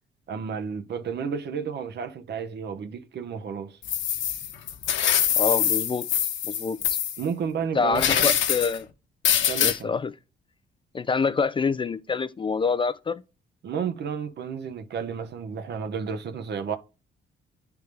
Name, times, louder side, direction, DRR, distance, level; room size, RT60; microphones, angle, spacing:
voice 1, 0.3-3.8 7.2-8.3 9.5-9.9 13.6-16.8, right 6 dB, 60° right, 0.8 m, -32 dB
sound 1, 3.8-7.2 7.9-8.8 9.2-9.8, left 9 dB, 70° left, 0.8 m, -24 dB
voice 2, 5.4-6.1 6.4-6.8 7.7-8.9 9.6-10.1 10.9-13.2, left 5 dB, 25° left, 0.3 m, -26 dB
9.2 x 3.4 x 3.3 m
cardioid pair, 90°, 20 cm